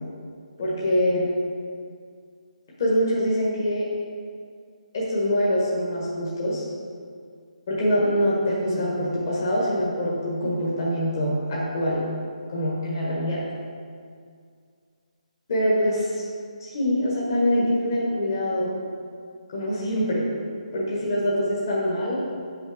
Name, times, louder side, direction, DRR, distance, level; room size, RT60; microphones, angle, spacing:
voice 1, 0.6-1.3 2.8-3.9 4.9-6.6 7.7-12.0 12.5-13.4 15.5-16.2 16.6-18.8 19.5-20.3 20.7-22.2, equal, 25° left, -6 dB, 1.5 m, -24 dB
8.6 x 6.4 x 5.0 m, 2.2 s
hypercardioid pair, 180°, 4 cm